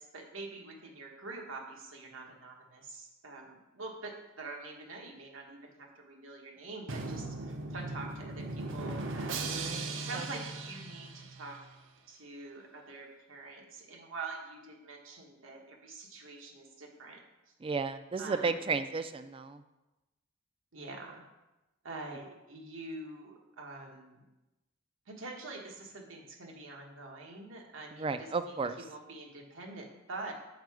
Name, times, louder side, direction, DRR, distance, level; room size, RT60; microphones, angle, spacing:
voice 1, 0.0-9.7 10.0-11.6 12.1-17.2 18.2-18.6 20.7-21.2 21.8-24.2 25.1-28.3 28.8-30.3, right 3 dB, 90° right, 1 dB, 1.2 m, -45 dB
Drum, 6.9-11.7, right 3 dB, 70° right, 0.7 m, -38 dB
voice 2, 9.5-10.3 17.6-19.6 27.9-28.8, right 4 dB, 25° right, 11 dB, 0.3 m, -34 dB
6.5 x 4.6 x 4.8 m, 1.0 s
head